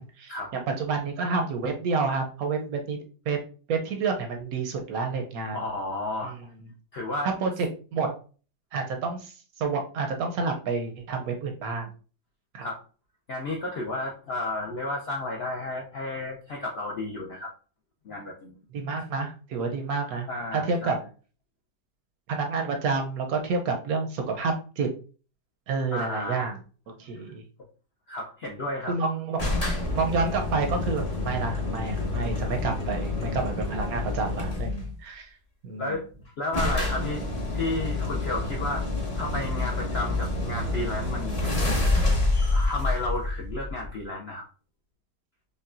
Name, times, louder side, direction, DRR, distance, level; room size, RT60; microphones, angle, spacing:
voice 1, 0.0-3.0 3.3-3.4 3.7-5.6 6.2-6.4 7.4-8.2 8.7-9.3 9.6-11.9 12.5-12.7 18.7-21.0 22.3-24.9 25.7-26.6 26.9-27.4 28.9-29.5 29.9-35.3 35.6-36.0, right 4 dB, 70° right, 4 dB, 0.9 m, -29 dB
voice 2, 5.5-6.3 6.9-7.3 12.6-12.8 13.3-17.5 18.1-18.6 20.3-21.0 25.9-26.6 28.1-29.0 31.3-31.4 35.8-36.1 36.4-37.2 37.5-38.9 39.2-41.8 42.5-44.4, left 2 dB, 75° left, 0 dB, 0.5 m, -32 dB
sound 1, 29.4-34.9 35.9-36.0 36.2-36.3 36.5-44.0, left 2 dB, 30° left, 0.7 m, -28 dB
5.3 x 2.2 x 2.4 m, 0.38 s
omnidirectional pair, 1.9 m